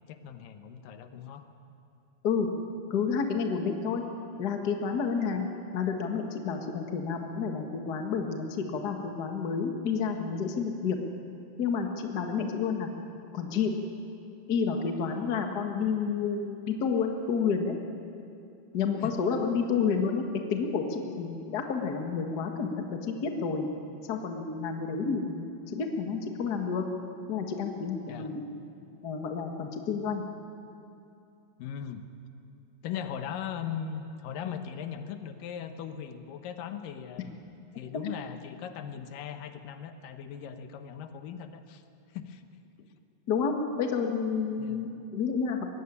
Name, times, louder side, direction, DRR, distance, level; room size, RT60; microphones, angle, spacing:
voice 1, 0.1-1.4 19.0-19.2 28.1-28.3 31.6-32.0 32.8-37.3 37.8-41.8 42.1-42.4 42.8-42.9 44.6-44.8, left 8 dB, 85° left, 8 dB, 2.7 m, -39 dB
voice 2, 2.9-4.0 4.4-5.5 5.7-11.0 11.6-12.9 13.3-13.7 14.5-17.8 18.7-20.2 20.5-23.7 24.1-26.8 27.3-28.4 29.0-30.3 43.3-45.7, left 5 dB, 40° left, 3 dB, 1.5 m, -30 dB
21.0 x 16.0 x 9.9 m, 2.7 s
omnidirectional pair, 3.8 m